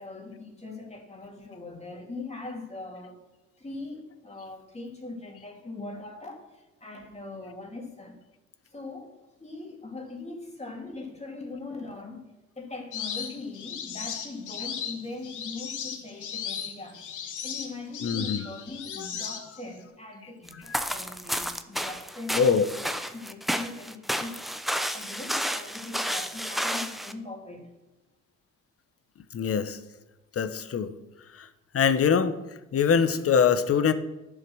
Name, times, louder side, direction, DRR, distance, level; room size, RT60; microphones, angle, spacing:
voice 1, 0.0-3.2 3.6-8.2 8.7-12.2 12.6-17.0 17.4-27.7, left 2 dB, 20° left, 1 dB, 2.8 m, -41 dB
sound 1, 12.9-19.8, left 7 dB, 80° left, 1.6 m, -36 dB
voice 2, 18.0-18.5 19.0-19.1 20.7-20.8 22.4-22.6 29.3-29.8 30.3-30.9 31.3-31.5 31.7-32.4 32.7-33.9, left 7 dB, 50° left, 12 dB, 1.0 m, -23 dB
sound 2, 20.5-27.1, equal, ahead, 0.7 m, -31 dB
11.5 x 7.5 x 6.3 m, 1.0 s
cardioid pair, 90°, 30 cm